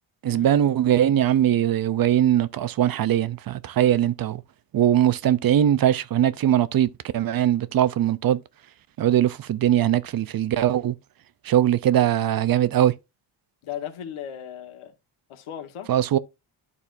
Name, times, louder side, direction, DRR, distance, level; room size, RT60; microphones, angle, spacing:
voice 1, 0.2-4.4 4.7-8.4 9.0-10.9 11.4-12.9 15.9-16.2, right 11 dB, 45° right, 0.5 m, -21 dB
voice 2, 13.6-14.9 15.3-15.9, left 9 dB, 90° left, 1.4 m, -36 dB
12.0 x 4.2 x 2.5 m
cardioid pair, 125°, 48 cm